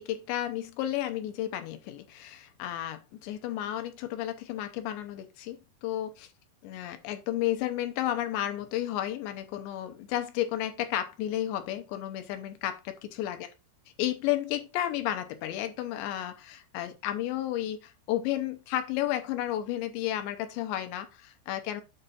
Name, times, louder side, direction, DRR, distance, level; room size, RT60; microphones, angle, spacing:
voice 1, 0.0-6.3 6.6-13.5 14.0-21.8, left 12 dB, 85° left, 3.1 m, -32 dB
8.0 x 4.2 x 5.1 m
omnidirectional pair, 5.2 m